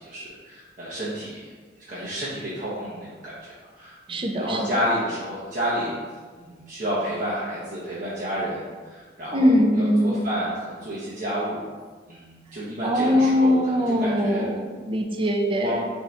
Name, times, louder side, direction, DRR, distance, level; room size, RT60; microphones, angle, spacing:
voice 1, 0.0-1.4 1.9-3.3 3.7-6.0 6.4-11.6 12.1-14.4 15.6-15.8, equal, 50° right, -9 dB, 0.8 m, -30 dB
voice 2, 4.1-4.7 9.3-10.2 12.8-15.9, equal, 30° right, 2 dB, 0.4 m, -22 dB
3.6 x 2.7 x 4.3 m, 1.5 s
head